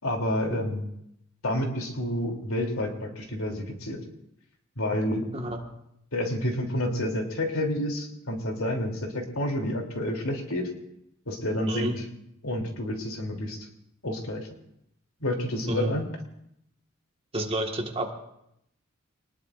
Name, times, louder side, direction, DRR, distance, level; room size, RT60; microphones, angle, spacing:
voice 1, 0.0-0.9 1.4-4.0 4.8-5.3 6.1-10.7 11.2-11.9 12.4-13.7 14.0-14.5 15.2-16.1, left 1 dB, 85° left, 2 dB, 3.2 m, -29 dB
voice 2, 17.3-18.1, right 1 dB, 25° right, 2 dB, 1.7 m, -30 dB
26.5 x 20.0 x 2.6 m, 0.78 s
head